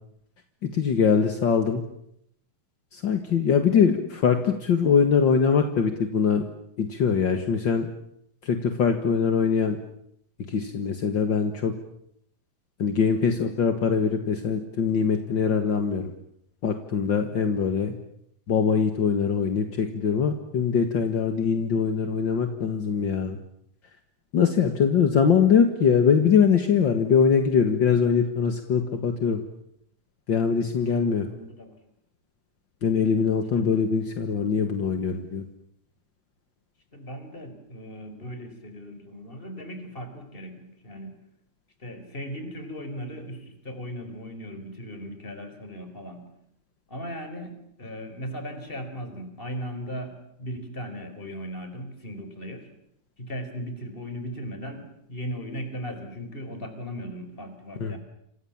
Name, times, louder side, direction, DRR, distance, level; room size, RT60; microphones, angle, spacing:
voice 1, 0.7-1.8 2.9-6.4 6.8-7.9 8.4-9.8 10.5-11.7 12.8-16.1 16.6-17.9 18.5-23.4 24.3-29.4 30.3-31.3 32.8-35.5 57.8-58.0, left 6 dB, 45° left, 6 dB, 1.5 m, -22 dB
voice 2, 30.9-31.8 33.5-33.8 36.9-41.1 41.8-46.3 46.9-52.7 53.2-58.0, equal, 15° left, 8 dB, 4.4 m, -37 dB
29.0 x 26.0 x 7.3 m, 0.74 s
omnidirectional pair, 4.4 m